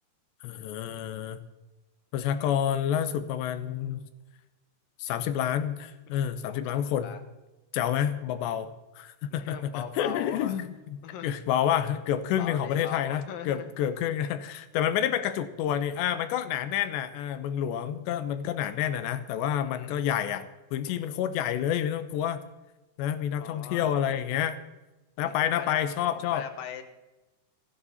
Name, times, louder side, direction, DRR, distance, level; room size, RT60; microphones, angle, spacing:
voice 1, 0.4-1.4 2.1-4.1 5.0-7.1 7.7-20.4 20.7-22.4 23.0-24.6 25.2-26.5, left 10 dB, 85° left, 11 dB, 3.2 m, -29 dB
voice 2, 6.1-7.2 9.3-10.6 11.0-11.3 12.4-13.7 19.6-19.9 23.4-23.9 25.2-25.9 26.2-26.8, left 9 dB, 65° left, 9 dB, 2.7 m, -40 dB
27.0 x 10.0 x 4.2 m, 1.1 s
omnidirectional pair, 4.9 m